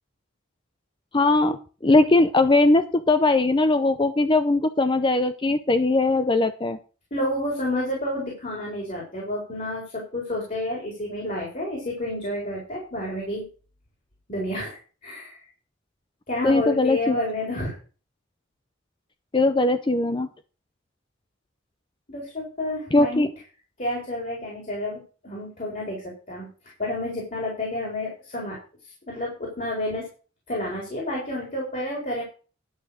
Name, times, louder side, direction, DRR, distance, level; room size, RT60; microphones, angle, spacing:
voice 1, 1.1-1.6 1.8-6.8 16.4-17.2 19.3-20.3 22.9-23.3, left 2 dB, 25° left, 10 dB, 0.6 m, -20 dB
voice 2, 7.1-13.5 14.3-15.4 16.3-17.7 22.1-23.3 23.8-26.5 26.8-28.6 29.1-30.1 30.5-32.2, left 1 dB, 40° left, -2 dB, 4.2 m, -30 dB
11.0 x 6.1 x 6.5 m, 0.37 s
head